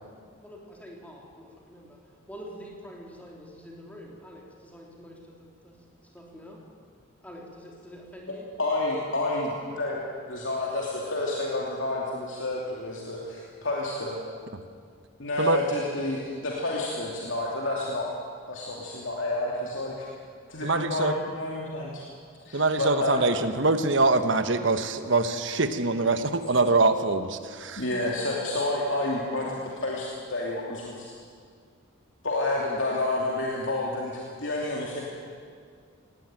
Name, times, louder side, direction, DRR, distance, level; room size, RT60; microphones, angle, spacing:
voice 1, 0.4-5.8 6.0-6.6 7.2-8.5, equal, 5° left, -2 dB, 3.4 m, -46 dB
voice 2, 8.6-10.0 10.3-14.2 15.2-18.1 18.5-20.1 20.5-22.0 22.4-23.3 27.8-31.1 32.2-35.0, left 2 dB, 65° left, -3 dB, 2.8 m, -29 dB
voice 3, 20.6-21.1 22.5-27.8, right 3 dB, 60° right, 10 dB, 1.2 m, -24 dB
18.5 x 18.0 x 9.2 m, 2.1 s
head